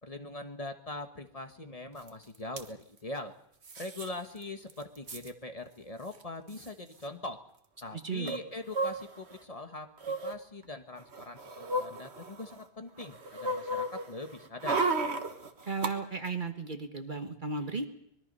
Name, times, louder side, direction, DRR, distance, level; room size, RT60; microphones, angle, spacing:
voice 1, 0.0-3.3 3.8-7.4 7.8-14.9, left 2 dB, 35° left, 6 dB, 1.4 m, -42 dB
sound 1, 2.1-2.2 2.4-2.7 3.6-4.1 4.4-4.5 4.7-5.3 6.2-6.3 6.5-6.7 8.3-9.4 10.0-10.4 11.0-12.6 13.0-15.9 16.3-16.4, right 2 dB, 85° right, 1.7 m, -34 dB
voice 2, 7.9-8.3 15.6-17.9, right 4 dB, 50° right, 6 dB, 1.5 m, -35 dB
25.0 x 21.5 x 5.5 m, 0.74 s
omnidirectional pair, 1.1 m